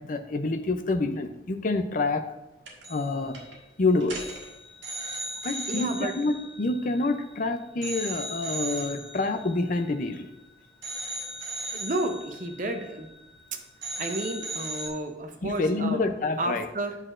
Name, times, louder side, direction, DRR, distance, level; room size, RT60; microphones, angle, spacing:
voice 1, 0.1-2.2 2.9-3.4 3.8-4.2 5.4-10.3 15.4-16.7, left 3 dB, 45° left, 7 dB, 0.5 m, -27 dB
sound 1, 2.7-3.1 3.3-3.6 4.0-7.4 7.8-10.4 10.8-13.5 13.8-14.9, right 1 dB, 90° right, 1.5 m, -37 dB
voice 2, 5.7-6.1 11.7-13.1 13.5-13.6 14.0-16.0 16.4-17.0, right 1 dB, 45° right, 6 dB, 0.7 m, -31 dB
8.6 x 6.5 x 2.5 m, 0.94 s
head